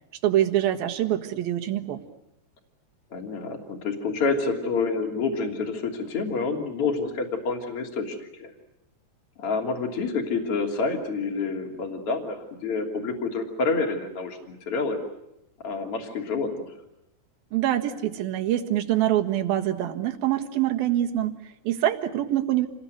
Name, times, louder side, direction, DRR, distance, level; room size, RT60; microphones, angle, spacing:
voice 1, 0.2-2.0 17.5-22.7, right 12 dB, 65° right, 5 dB, 3.1 m, -25 dB
voice 2, 3.1-8.5 9.4-15.0 15.6-16.7, left 4 dB, 35° left, 3 dB, 3.5 m, -28 dB
28.5 x 21.0 x 9.5 m, 0.85 s
omnidirectional pair, 5.0 m